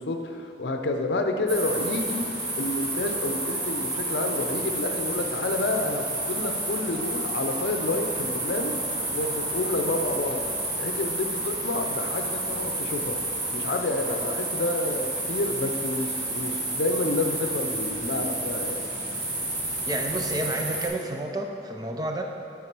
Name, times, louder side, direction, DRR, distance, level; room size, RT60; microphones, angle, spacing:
voice 1, 0.0-2.3 2.6-8.8 9.1-10.4 10.8-13.2 13.5-18.9, left 2 dB, 80° left, 5 dB, 0.6 m, -29 dB
sound 1, 1.5-20.9, right 2 dB, 45° right, 1.6 m, -30 dB
voice 2, 19.9-22.2, right 1 dB, 20° right, 3 dB, 0.4 m, -30 dB
8.9 x 3.7 x 5.9 m, 2.6 s
head